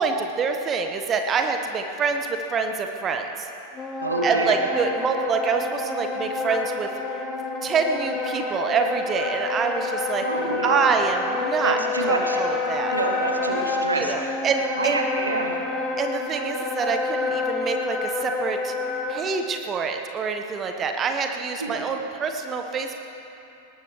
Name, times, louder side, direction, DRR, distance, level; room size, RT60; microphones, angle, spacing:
voice 1, 0.0-3.5 4.2-6.9 7.6-10.2 10.6-11.8 12.1-12.9 13.9-15.0 16.0-18.7 19.1-23.1, right 5 dB, 25° right, 5 dB, 1.0 m, -26 dB
Wind instrument woodwind instrument, 3.7-19.2, left 3 dB, 20° left, 2.0 m, -28 dB
voice 2, 4.0-4.6 10.2-10.9 11.6-12.4 12.9-14.4 14.8-15.6 21.6-21.8, right 2 dB, 80° right, 3 dB, 1.5 m, -27 dB
20.0 x 18.5 x 3.1 m, 2.9 s
figure-of-eight pair, 90°, 0 cm